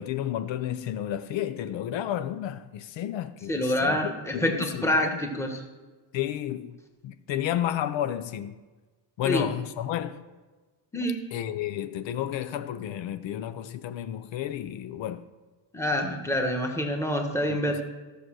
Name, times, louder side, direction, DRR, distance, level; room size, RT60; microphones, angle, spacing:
voice 1, 0.0-4.9 6.1-6.7 7.0-8.6 9.2-10.2 11.3-15.2 17.5-17.8, left 11 dB, 70° left, 0.7 m, -31 dB
voice 2, 3.5-5.6 9.2-9.5 10.9-11.2 15.7-17.8, left 1 dB, 5° left, 1.3 m, -27 dB
14.0 x 6.5 x 6.3 m
cardioid pair, 160°, 46 cm